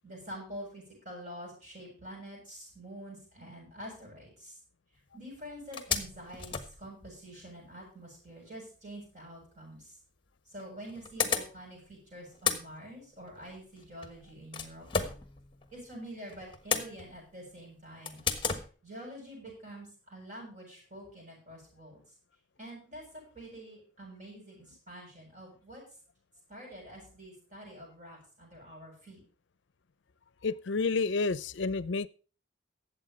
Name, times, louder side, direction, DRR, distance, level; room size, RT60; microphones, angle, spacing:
voice 1, 0.0-4.6 5.1-10.0 10.5-15.1 15.7-18.2 18.8-22.0 22.6-25.8 26.5-29.2, equal, 40° right, 7.7 m, -47 dB
sound 1, 5.0-5.1 5.4-5.5 5.7-7.6 9.6-9.7 10.6-11.9 12.2-15.9 16.3-17.4 18.0-18.7, left 6 dB, 25° left, 1.3 m, -35 dB
voice 2, 30.4-32.1, left 4 dB, 70° left, 0.5 m, -30 dB
12.5 x 7.9 x 5.3 m
head